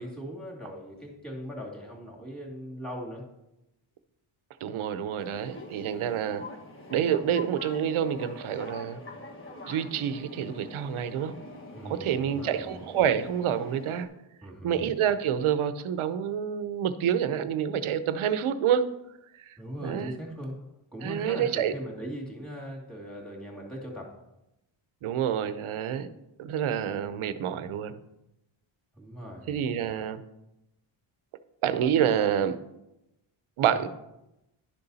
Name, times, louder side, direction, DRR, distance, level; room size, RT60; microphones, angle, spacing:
voice 1, 0.0-3.3 11.7-12.7 14.4-14.9 19.6-20.6 20.9-24.1 29.0-29.5 33.7-33.8, equal, ahead, -2 dB, 2.4 m, -39 dB
voice 2, 4.6-6.4 6.9-9.0 9.7-11.4 11.8-14.1 14.6-18.9 19.4-19.5 19.8-20.1 21.0-21.7 25.0-26.1 26.4-28.0 29.5-30.2 31.6-32.6 33.6-33.9, right 9 dB, 75° right, 12 dB, 0.8 m, -28 dB
sound 1, 5.2-14.1, left 1 dB, 25° left, 1.2 m, -44 dB
11.5 x 6.9 x 4.1 m, 0.90 s
wide cardioid pair, 165°, 50 cm